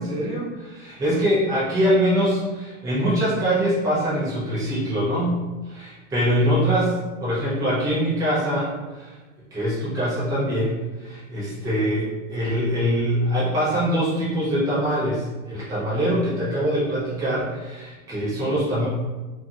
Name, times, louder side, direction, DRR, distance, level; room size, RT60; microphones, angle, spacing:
voice 1, 0.0-9.1 9.5-18.9, equal, 10° right, -9 dB, 0.6 m, -23 dB
2.6 x 2.6 x 2.3 m, 1.2 s
supercardioid pair, 160°, 40 cm